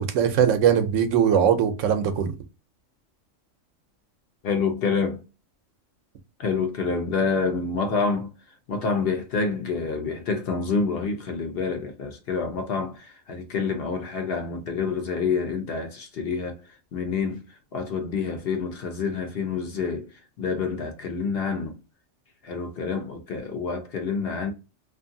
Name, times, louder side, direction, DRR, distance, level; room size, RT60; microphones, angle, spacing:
voice 1, 0.0-2.3, right 8 dB, 85° right, 1.0 m, -21 dB
voice 2, 4.4-5.2 6.4-8.3 8.7-16.6 16.9-17.4 17.7-20.1 20.4-21.8 22.4-24.5, left 5 dB, 60° left, 0.7 m, -27 dB
2.6 x 2.5 x 2.5 m
omnidirectional pair, 1.3 m